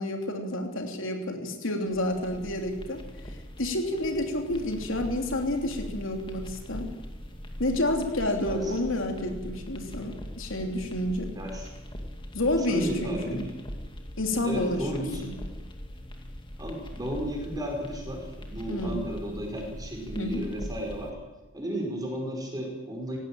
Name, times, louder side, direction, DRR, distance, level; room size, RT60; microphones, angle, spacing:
voice 1, 0.0-6.9 7.6-11.3 12.3-13.5 14.2-15.3 18.7-19.1 20.2-20.4, left 1 dB, 75° left, 3 dB, 3.1 m, -30 dB
sound 1, 1.9-21.1, equal, 25° left, 2.3 m, -41 dB
voice 2, 11.3-11.7 12.6-13.5 14.4-15.2 16.6-21.2 21.5-23.2, equal, 20° right, 1 dB, 5.3 m, -34 dB
18.5 x 16.0 x 9.0 m, 1.1 s
head